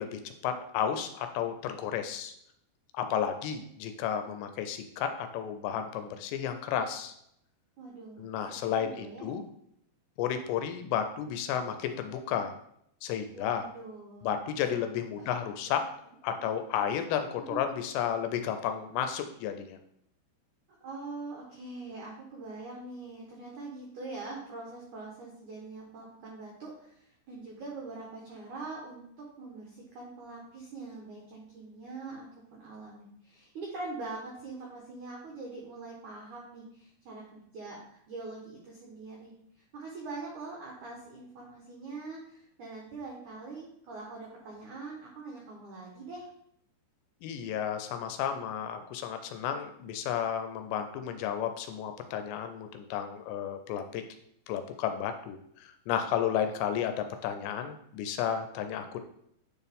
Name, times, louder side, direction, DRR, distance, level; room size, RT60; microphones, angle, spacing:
voice 1, 0.0-2.3 2.9-7.1 8.2-9.4 10.2-12.6 13.0-13.7 14.2-15.8 16.2-19.8 47.2-54.0 54.5-59.0, left 9 dB, 80° left, 7 dB, 2.7 m, -32 dB
voice 2, 7.8-9.3 13.3-14.4 14.9-15.8 16.3-16.5 17.5-17.6 20.8-37.8 38.1-39.3 39.7-46.3, right 3 dB, 80° right, -2 dB, 1.7 m, -43 dB
9.7 x 4.5 x 3.5 m, 0.72 s
omnidirectional pair, 5.2 m